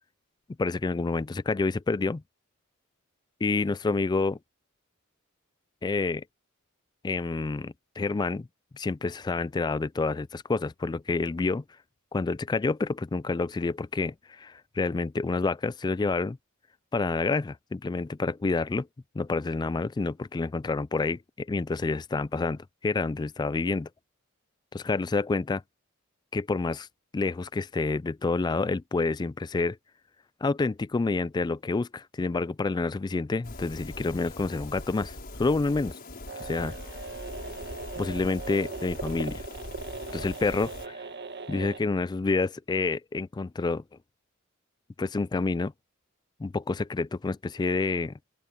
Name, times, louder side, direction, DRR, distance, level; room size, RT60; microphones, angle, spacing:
voice 1, 0.6-2.2 3.4-4.4 5.8-6.2 7.0-8.5 8.7-11.6 12.1-16.4 16.9-18.9 19.1-23.9 24.7-25.6 26.3-26.9 27.1-29.8 30.4-36.0 36.4-36.8 38.0-39.4 40.1-41.0 41.5-43.8 45.0-45.7 46.4-48.1, left 3 dB, 20° left, 0.3 m, -28 dB
sound 1, 33.4-40.9, left 2 dB, 45° left, 6.1 m, -42 dB
sound 2, 36.3-41.8, right 3 dB, 50° right, 1.5 m, -39 dB
open air
head